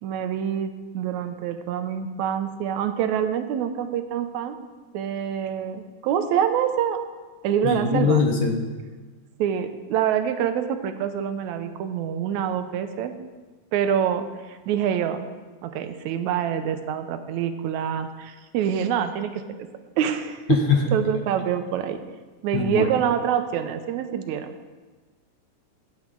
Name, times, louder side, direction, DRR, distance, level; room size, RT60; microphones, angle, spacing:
voice 1, 0.0-4.6 4.9-7.0 7.4-8.2 9.4-13.1 13.7-15.2 15.6-19.4 20.0-20.7 20.9-22.0 22.4-24.5, right 9 dB, 75° right, 8 dB, 1.9 m, -26 dB
voice 2, 7.6-8.6 20.5-20.8 22.5-22.9, left 5 dB, 65° left, 2 dB, 1.2 m, -22 dB
15.0 x 8.6 x 3.7 m, 1.4 s
omnidirectional pair, 3.6 m